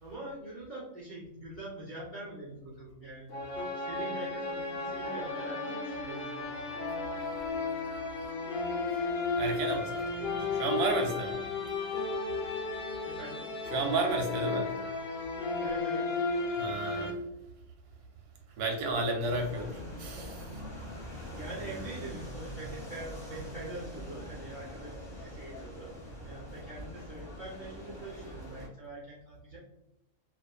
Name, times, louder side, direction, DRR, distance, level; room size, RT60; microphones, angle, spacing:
voice 1, 0.0-3.3 3.6-6.6 13.0-13.5 15.6-16.2 21.3-25.9 26.2-29.6, right 1 dB, 65° right, -7 dB, 0.4 m, -44 dB
sound 1, 3.3-17.1, left 3 dB, 90° left, 0.5 m, -34 dB
voice 2, 9.3-11.4 13.7-14.7 16.6-17.1 18.6-20.4, right 2 dB, 90° right, 2 dB, 1.1 m, -32 dB
sound 2, 19.2-28.7, equal, 20° left, 0.8 m, -43 dB
2.5 x 2.4 x 2.2 m, 0.88 s
omnidirectional pair, 1.6 m